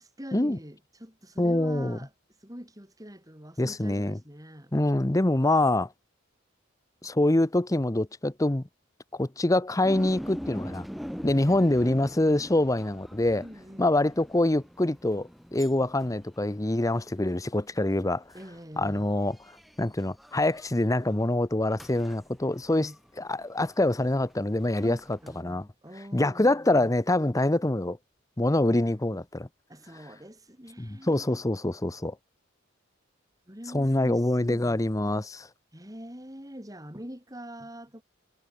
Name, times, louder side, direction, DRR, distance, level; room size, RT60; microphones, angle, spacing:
voice 1, 0.0-2.1 2.4-4.7 13.4-14.1 18.3-19.1 22.8-23.0 24.8-26.9 29.7-31.4 33.5-34.8 35.7-38.0, equal, 15° right, 7.9 m, -44 dB
voice 2, 1.4-2.0 3.6-4.2 4.7-5.9 7.0-8.6 9.1-10.8 11.2-13.4 13.8-18.2 18.8-19.4 19.8-22.9 23.2-25.6 26.1-28.0 28.4-29.5 30.8-32.1 33.7-35.5, left 1 dB, 15° left, 0.7 m, -25 dB
sound 1, 9.8-21.1 21.8-25.4, equal, ahead, 5.4 m, -44 dB
head